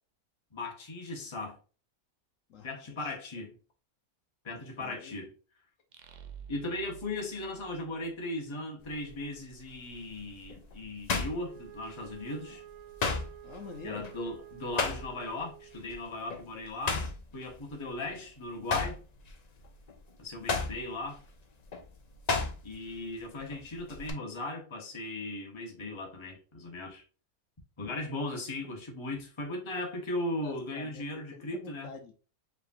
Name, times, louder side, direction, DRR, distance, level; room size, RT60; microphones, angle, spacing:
voice 1, 0.5-1.6 2.6-3.6 4.4-5.3 6.5-12.6 13.8-17.1 17.3-19.0 20.2-21.2 22.6-27.0 27.8-31.9, left 2 dB, 20° left, 1.1 m, -37 dB
voice 2, 2.5-3.1 3.4-3.5 4.5-5.1 13.4-14.1 30.4-32.1, left 5 dB, 65° left, 1.1 m, -47 dB
sound 1, 5.9-8.6, right 7 dB, 65° right, 0.4 m, -50 dB
sound 2, 8.8-9.2 9.7-12.2 12.5-15.4 15.7-16.0 16.3-18.2 18.6-22.9 23.2-24.1, left 4 dB, 50° left, 0.5 m, -34 dB
Wind instrument woodwind instrument, 11.4-16.0, right 15 dB, 80° right, 1.1 m, -50 dB
4.8 x 3.5 x 2.6 m
omnidirectional pair, 1.5 m